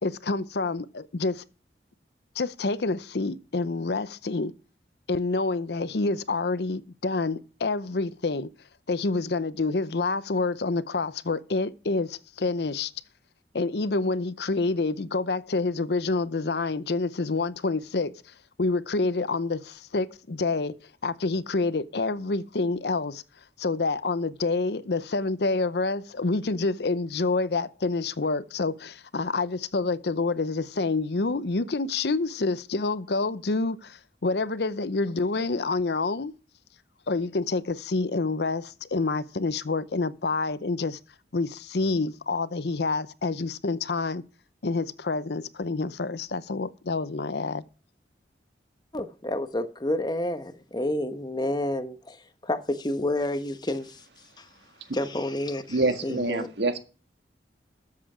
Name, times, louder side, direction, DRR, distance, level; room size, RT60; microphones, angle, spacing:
voice 1, 0.0-1.4 2.4-4.5 5.1-8.5 8.9-12.9 13.5-18.1 18.6-20.7 21.0-23.2 23.6-36.3 37.1-41.0 41.3-44.2 44.6-47.6, left 3 dB, 70° left, 0.7 m, -27 dB
voice 2, 48.9-54.5 54.9-55.8 56.0-56.5, left 1 dB, 25° left, 1.0 m, -30 dB
voice 3, 55.7-56.8, right 2 dB, 75° right, 1.8 m, -26 dB
13.5 x 7.6 x 5.0 m
head